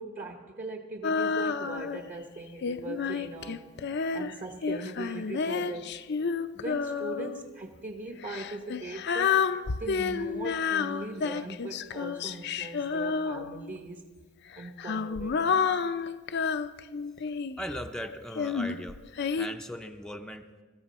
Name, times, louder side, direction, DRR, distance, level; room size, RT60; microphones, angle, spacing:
voice 1, 0.0-3.7 4.1-6.0 6.5-9.5 9.8-14.1 14.6-15.8, right 2 dB, 40° right, 3 dB, 1.1 m, -40 dB
Female singing, 1.0-2.1 2.6-7.4 8.2-13.8 14.5-17.7 18.3-19.5, left 5 dB, 60° left, 0.5 m, -30 dB
voice 2, 17.6-19.0 19.3-20.5, equal, 5° left, 4 dB, 0.6 m, -38 dB
22.0 x 14.5 x 4.2 m, 1.4 s
head